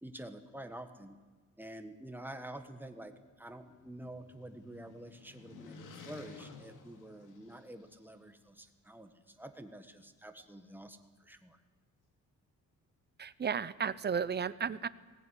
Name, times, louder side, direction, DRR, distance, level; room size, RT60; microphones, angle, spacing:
voice 1, 0.0-1.2 1.6-11.6, right 1 dB, 5° right, 7 dB, 1.5 m, -48 dB
sound 1, 3.3-8.0, left 4 dB, 80° left, 2.7 m, -54 dB
voice 2, 13.2-14.9, right 7 dB, 35° right, 16 dB, 0.7 m, -33 dB
20.5 x 18.5 x 9.9 m, 1.3 s
wide cardioid pair, 150°, 30 cm